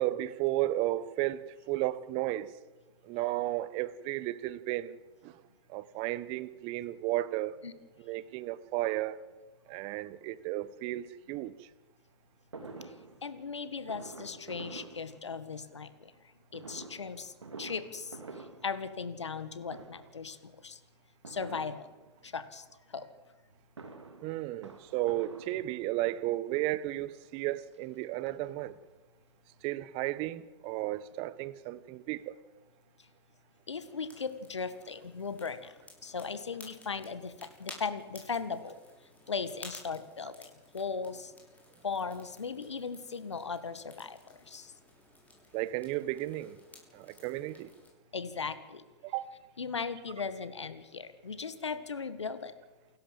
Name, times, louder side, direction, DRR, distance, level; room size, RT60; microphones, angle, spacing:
voice 1, 0.0-2.5 3.0-5.0 5.2-5.4 5.7-7.6 8.0-9.2 9.7-11.5 24.2-28.7 29.6-32.4 45.5-46.6 46.9-47.7 49.0-49.3, right 16 dB, 40° right, 1.2 m, -33 dB
Fireworks, 12.5-15.7 16.5-19.4 19.7-20.3 21.2-22.3 23.5-26.1 26.9-27.0 27.3-27.4 27.7-29.0 29.3-29.4 29.6-29.7, right 3 dB, 85° right, 3.1 m, -49 dB
voice 2, 13.2-16.1 16.5-20.8 21.3-21.9 22.2-23.1 33.7-35.8 36.0-38.8 39.3-41.3 41.8-44.7 48.1-48.8 49.6-52.5, left 5 dB, 85° left, 1.8 m, -38 dB
sound 1, 33.8-47.9, left 2 dB, 10° left, 7.0 m, -54 dB
28.5 x 12.5 x 7.5 m
hypercardioid pair, 105°, 14 cm